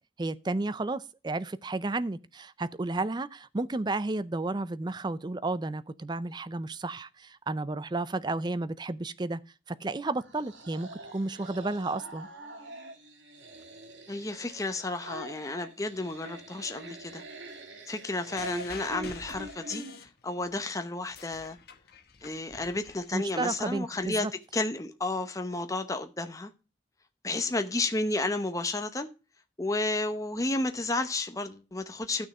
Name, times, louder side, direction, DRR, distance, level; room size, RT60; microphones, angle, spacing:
voice 1, 0.2-9.4 9.7-12.3 23.1-24.3, right 2 dB, 25° right, 0.4 m, -32 dB
sound 1, 10.1-20.1, right 2 dB, 75° right, 2.1 m, -45 dB
voice 2, 14.1-17.2 17.9-19.8 20.2-21.6 22.2-24.3 24.5-26.5 27.2-29.1 29.6-32.3, left 2 dB, 15° left, 0.8 m, -32 dB
sound 2, 18.4-20.6 20.9-23.5 24.4-24.5, left 5 dB, 55° left, 1.2 m, -47 dB
12.0 x 6.4 x 4.2 m
head